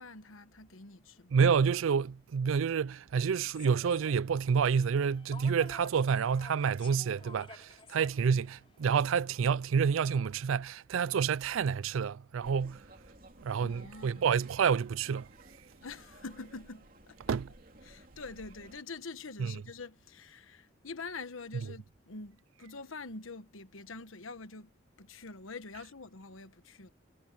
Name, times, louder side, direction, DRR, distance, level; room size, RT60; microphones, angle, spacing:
voice 1, 0.0-1.4 13.6-14.4 15.8-17.4 17.8-24.7 25.0-26.9, left 4 dB, 80° left, 1.2 m, -45 dB
voice 2, 1.3-12.8 13.4-15.3 17.3-17.5 19.4-19.5, right 6 dB, 80° right, 0.4 m, -28 dB
Human voice / Subway metro underground, 3.5-9.3, left 3 dB, 25° left, 4.5 m, -53 dB
sound 1, 12.4-18.8, right 2 dB, 45° right, 3.2 m, -56 dB
head